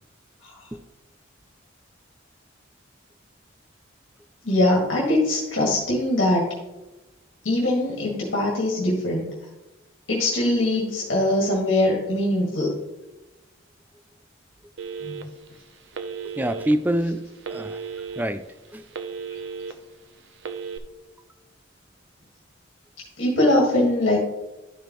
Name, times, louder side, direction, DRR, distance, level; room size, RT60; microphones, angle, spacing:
voice 1, 4.4-6.5 7.4-9.3 10.1-12.7 15.0-15.2 23.2-24.2, left 1 dB, 70° left, -3 dB, 1.9 m, -22 dB
Telephone, 14.8-15.5 15.9-16.7 17.4-18.2 18.6-19.7 20.4-20.8, right 6 dB, 65° right, 0.7 m, -34 dB
voice 2, 16.4-17.9 18.2-18.4 18.7-18.8, right 1 dB, 10° right, 9 dB, 0.3 m, -26 dB
12.0 x 5.0 x 3.0 m, 1.0 s
head